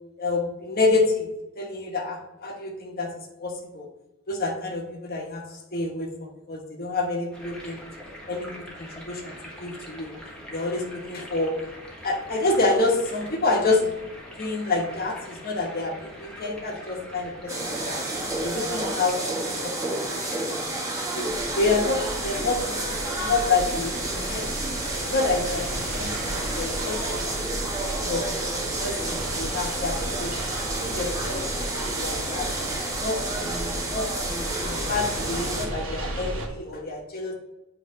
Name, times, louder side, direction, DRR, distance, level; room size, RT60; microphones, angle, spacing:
voice 1, 0.2-1.3 1.6-3.1 3.4-3.9 4.3-7.8 8.3-10.1 10.5-11.5 12.0-13.9 14.4-18.0 18.4-20.2 21.1-24.5 25.0-27.0 27.8-28.3 28.8-30.4 30.7-31.4 31.7-32.5 32.9-37.3, left 3 dB, 45° left, 1 dB, 1.2 m, -28 dB
sound 1, 7.3-27.2, equal, 5° left, 1.3 m, -43 dB
sound 2, 17.5-35.7, right 2 dB, 15° right, 1.0 m, -30 dB
sound 3, 21.3-36.5, right 1 dB, 70° right, 1.2 m, -35 dB
7.9 x 3.2 x 5.1 m, 0.99 s
head